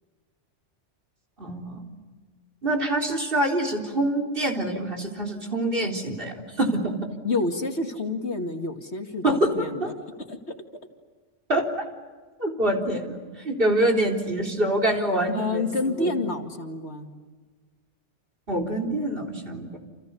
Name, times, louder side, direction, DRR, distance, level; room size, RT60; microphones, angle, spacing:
voice 1, 1.4-1.8 2.6-6.9 9.2-9.9 11.5-11.7 12.4-15.7 16.0-16.1 18.5-19.8, right 1 dB, 50° right, 4 dB, 4.2 m, -25 dB
voice 2, 7.2-9.9 10.3-10.4 15.3-17.1, left 2 dB, 60° left, 4 dB, 2.5 m, -28 dB
30.0 x 28.5 x 7.0 m, 1.4 s
omnidirectional pair, 1.2 m